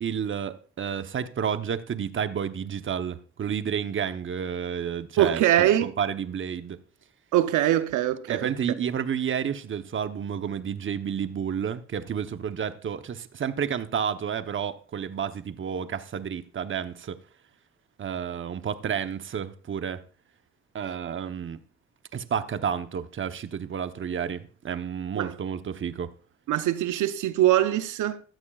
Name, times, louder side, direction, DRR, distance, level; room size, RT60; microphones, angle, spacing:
voice 1, 0.0-6.8 8.3-17.2 18.0-20.0 20.7-21.6 22.1-26.1, right 8 dB, 40° right, 0.9 m, -30 dB
voice 2, 5.2-5.9 7.3-8.5 25.1-25.4 26.5-28.2, right 12 dB, 85° right, 0.7 m, -23 dB
15.5 x 12.5 x 2.4 m
cardioid pair, 90°, 30 cm